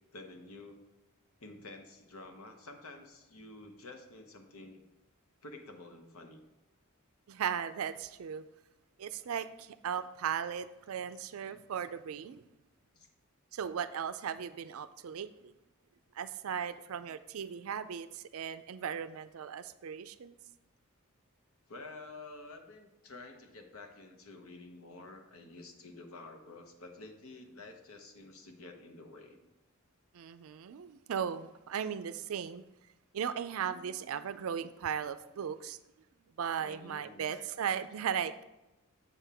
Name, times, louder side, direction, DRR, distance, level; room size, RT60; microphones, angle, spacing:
voice 1, 0.1-0.8 1.4-4.9 5.4-6.4 13.0-13.1 21.7-29.4 36.6-37.3, left 2 dB, 80° left, 5 dB, 0.9 m, -50 dB
voice 2, 7.3-8.4 9.0-12.4 13.5-15.5 16.1-20.3 30.1-32.6 33.1-35.8 36.4-38.4, right 8 dB, 75° right, 13 dB, 0.4 m, -37 dB
7.1 x 5.8 x 3.5 m, 0.98 s
head